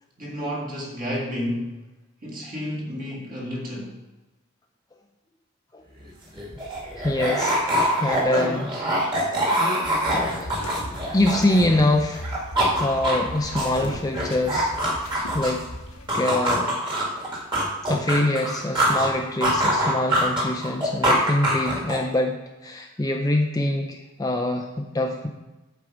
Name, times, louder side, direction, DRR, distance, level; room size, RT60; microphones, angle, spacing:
voice 1, 0.2-1.8 2.2-4.0, equal, 40° right, -2 dB, 2.1 m, -31 dB
sound 1, 6.0-6.1 6.3-11.9 12.1-15.7 16.1-19.1 19.4-22.2, right 1 dB, 20° right, 1.9 m, -24 dB
voice 2, 7.0-7.8 8.0-8.8 10.1-10.5 11.1-12.3 12.8-14.7 15.3-15.6 16.1-16.7 17.9-25.3, left 1 dB, 15° left, 2 dB, 0.5 m, -24 dB
sound 2, 9.8-16.1, left 1 dB, 85° left, 1.3 m, -38 dB
8.5 x 4.7 x 6.1 m, 1.1 s
head